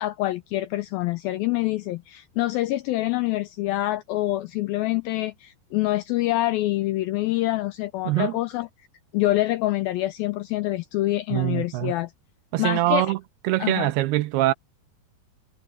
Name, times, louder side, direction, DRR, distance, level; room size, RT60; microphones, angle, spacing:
voice 1, 0.0-8.7 9.1-12.1 12.6-13.1 13.6-13.9, left 17 dB, 85° left, 2.1 m, -26 dB
voice 2, 8.1-8.4 11.3-11.9 12.5-13.2 13.4-14.5, right 16 dB, 80° right, 2.5 m, -23 dB
omnidirectional pair, 4.9 m